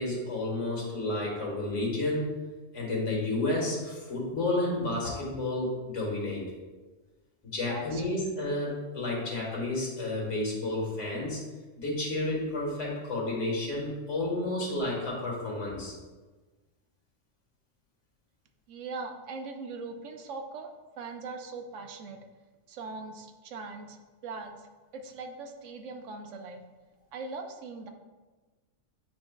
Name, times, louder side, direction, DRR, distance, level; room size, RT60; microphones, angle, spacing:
voice 1, 0.0-2.3 2.7-6.4 7.5-11.4 11.8-15.9, left 2 dB, 75° left, -3 dB, 2.0 m, -31 dB
voice 2, 7.5-8.0 18.7-20.7 21.0-22.2 22.7-24.7 24.9-26.6 27.1-27.9, right 4 dB, 90° right, 5 dB, 1.0 m, -40 dB
9.3 x 4.5 x 2.3 m, 1.3 s
omnidirectional pair, 1.3 m